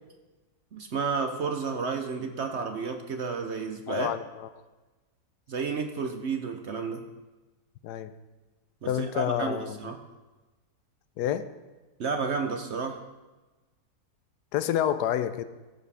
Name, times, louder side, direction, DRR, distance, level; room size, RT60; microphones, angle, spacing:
voice 1, 0.7-4.1 5.5-7.0 8.8-10.0 12.0-13.0, right 5 dB, 55° right, 5 dB, 0.8 m, -31 dB
voice 2, 3.9-4.5 7.8-8.1 8.8-9.8 11.2-11.4 14.5-15.4, left 10 dB, 85° left, 12 dB, 1.2 m, -28 dB
15.5 x 7.3 x 3.4 m, 1.2 s
omnidirectional pair, 1.7 m